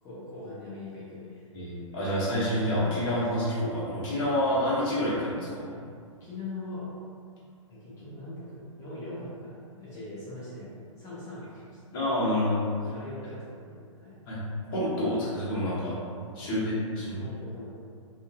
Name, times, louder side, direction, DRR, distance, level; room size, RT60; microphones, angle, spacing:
voice 1, 0.0-1.5 6.2-6.9 7.7-10.7 11.0-11.8 12.9-14.1 16.4-16.8 17.2-17.7, left 2 dB, 20° left, -12 dB, 0.8 m, -41 dB
voice 2, 1.5-5.8 11.9-12.7 14.3-14.4 14.7-16.0 16.3-17.2, left 1 dB, 45° left, -8 dB, 1.2 m, -28 dB
2.7 x 2.5 x 2.6 m, 2.2 s
figure-of-eight pair, 115°, 17 cm